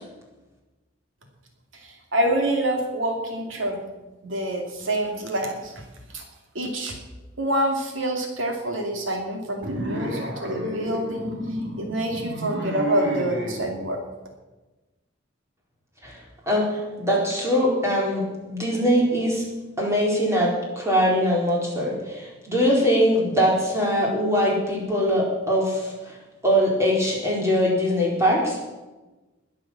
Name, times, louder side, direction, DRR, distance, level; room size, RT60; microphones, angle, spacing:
voice 1, 1.8-3.8 4.2-5.8 6.1-6.2 6.5-6.9 7.4-11.3 11.8-14.0, right 1 dB, 80° right, 2 dB, 2.6 m, -26 dB
sound 1, 9.6-13.6, right 1 dB, 60° right, 3.0 m, -31 dB
voice 2, 16.0-19.4 19.8-26.2 26.4-28.6, equal, 15° right, -3 dB, 4.3 m, -22 dB
21.0 x 7.6 x 7.4 m, 1.1 s
head